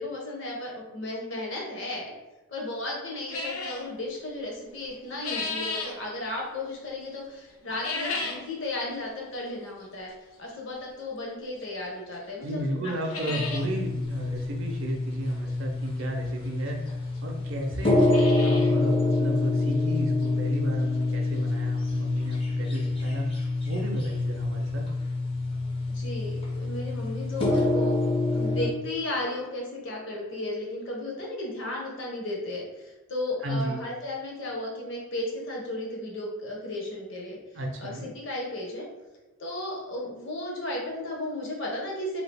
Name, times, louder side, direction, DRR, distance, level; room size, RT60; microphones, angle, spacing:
voice 1, 0.0-2.1 2.5-10.1 10.4-12.9 13.2-13.4 25.9-28.0 28.3-37.4 37.8-38.9 39.4-42.2, left 1 dB, 60° left, -2 dB, 0.8 m, -34 dB
sound 1, 3.3-3.9 4.8-6.0 7.7-8.5 8.9-9.0 9.8-9.9 11.6-11.7 12.1-12.2 12.5-12.6 12.9-13.7 14.0-14.1 14.3-14.4 16.0-16.1 16.9-17.0 17.2-17.3 17.8-18.8 19.1-19.2 19.7-19.8 20.2-20.3 22.0-22.1 22.3-22.4 22.8-22.9, left 3 dB, 80° left, 0.5 m, -34 dB
voice 2, 12.4-24.9 33.4-33.8 37.5-38.1, right 1 dB, 60° right, 1 dB, 0.5 m, -33 dB
sound 2, 13.4-28.7, left 2 dB, 25° left, 0.4 m, -27 dB
2.8 x 2.4 x 3.3 m, 1.1 s
head